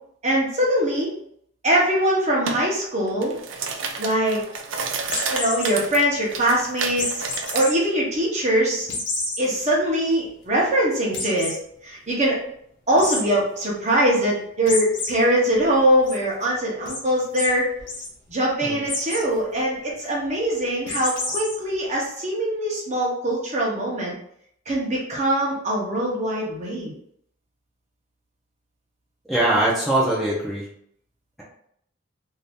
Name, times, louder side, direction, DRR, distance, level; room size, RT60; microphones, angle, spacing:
voice 1, 0.2-1.1 1.6-3.3 4.0-4.4 5.3-7.2 7.5-8.9 9.4-11.5 11.8-12.4 12.9-17.7 18.3-24.1 24.7-26.9, right 1 dB, 35° right, -4 dB, 0.9 m, -22 dB
sound 1, 2.5-2.6 3.1-7.7, right 5 dB, 75° right, 0.5 m, -30 dB
sound 2, 5.0-5.7 7.0-7.7 8.1-8.2 8.9-9.4 9.9-10.0 10.3-10.4 11.1-11.6 13.0-13.2 14.7-15.1 15.5-16.1 16.9-17.0 17.3-17.5 17.8-18.1 18.8-19.2 20.9-21.5, left 3 dB, 70° left, 0.9 m, -28 dB
voice 2, 29.3-30.7, right 1 dB, ahead, -8 dB, 0.7 m, -22 dB
2.7 x 2.6 x 3.4 m, 0.69 s
head